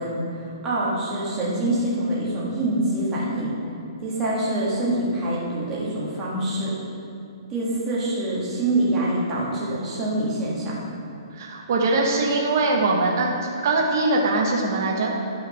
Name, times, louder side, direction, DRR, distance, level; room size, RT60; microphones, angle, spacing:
voice 1, 0.0-3.5 4.0-6.7 7.5-10.8, right 1 dB, 15° right, -6 dB, 1.6 m, -25 dB
voice 2, 11.3-13.3 13.6-15.1, right 2 dB, 40° right, -1 dB, 1.1 m, -22 dB
9.1 x 5.0 x 5.8 m, 2.6 s
hypercardioid pair, 175°, 3 cm